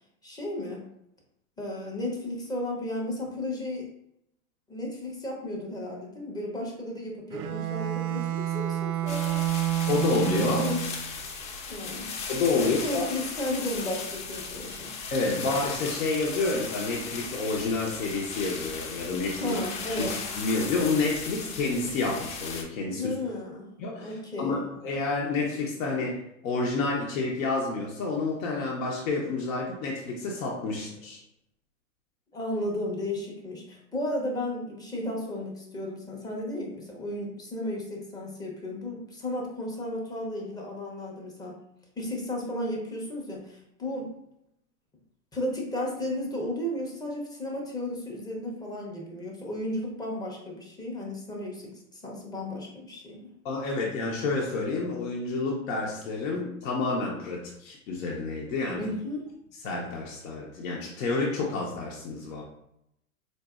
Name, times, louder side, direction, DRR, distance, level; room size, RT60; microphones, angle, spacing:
voice 1, 0.2-0.9 1.6-3.9 4.7-9.4 10.4-10.8 11.7-12.2 12.5-14.9 19.4-20.1 22.9-23.7 24.0-24.6 32.3-41.6 42.0-44.1 45.3-53.3 58.8-59.3, left 1 dB, 10° left, -1 dB, 0.6 m, -34 dB
Bowed string instrument, 7.3-11.1, right 13 dB, 75° right, 0.5 m, -29 dB
sound 1, 9.1-22.6, left 4 dB, 40° left, 0.8 m, -37 dB
voice 2, 9.9-10.6 12.3-13.0 15.1-19.6 20.0-20.1 20.4-23.1 23.8-24.1 24.4-26.2 26.4-31.2 53.4-58.9 59.6-62.4, left 3 dB, 65° left, -2 dB, 0.8 m, -29 dB
4.1 x 2.6 x 2.3 m, 0.79 s
hypercardioid pair, 105°, 44 cm